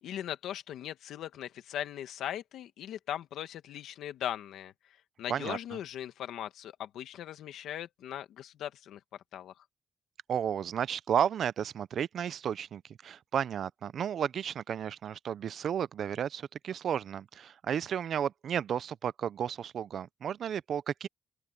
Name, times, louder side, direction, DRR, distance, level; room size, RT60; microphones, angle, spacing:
voice 1, 0.0-4.7 5.2-9.0 9.3-9.5, left 11 dB, 85° left, 1.8 m, -39 dB
voice 2, 10.3-21.1, right 8 dB, 55° right, 0.5 m, -33 dB
open air
cardioid pair, 145°, 0 cm